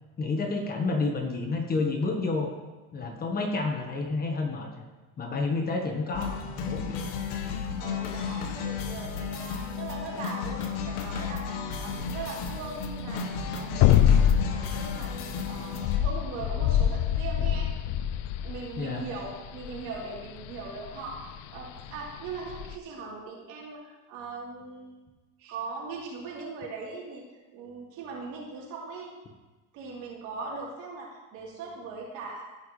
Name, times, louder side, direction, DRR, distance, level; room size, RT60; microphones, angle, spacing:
voice 1, 0.2-2.5 2.9-4.8 5.2-6.4 6.7-7.1 18.8-19.0, left 3 dB, 25° left, 2 dB, 1.2 m, -29 dB
sound 1, 6.1-16.0, left 5 dB, 70° left, 1.2 m, -34 dB
voice 2, 7.8-17.7 18.4-25.0 25.4-27.2 27.5-29.1 29.7-32.4, right 4 dB, 60° right, -4 dB, 3.5 m, -40 dB
sound 2, 11.9-22.7, left 10 dB, 50° left, 0.5 m, -26 dB
15.5 x 5.7 x 3.2 m, 1.2 s
supercardioid pair, 130°, 35 cm